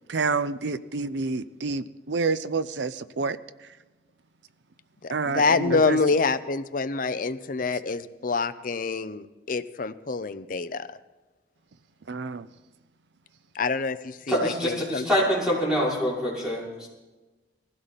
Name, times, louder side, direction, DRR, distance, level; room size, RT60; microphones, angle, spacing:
voice 1, 0.1-3.7 5.1-6.0 12.1-12.5, right 4 dB, 85° right, 0.6 m, -28 dB
voice 2, 5.0-10.9 13.5-15.0, left 4 dB, 50° left, 0.7 m, -26 dB
voice 3, 14.3-16.9, equal, 5° right, 5.9 m, -25 dB
20.5 x 16.0 x 4.2 m
head